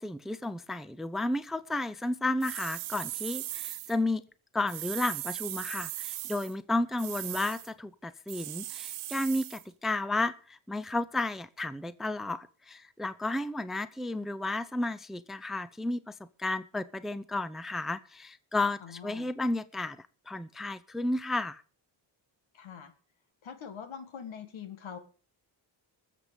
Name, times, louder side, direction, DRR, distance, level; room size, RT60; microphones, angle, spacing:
voice 1, 0.0-4.2 4.5-21.6, left 2 dB, ahead, 0.6 m, -32 dB
sound 1, 2.4-4.0 4.7-6.5 7.0-7.7 8.3-9.6, right 15 dB, 85° right, 0.8 m, -38 dB
voice 2, 18.8-19.3 22.5-22.9 23.4-25.0, left 7 dB, 75° left, 2.1 m, -43 dB
20.0 x 7.5 x 5.2 m
cardioid pair, 90°, 48 cm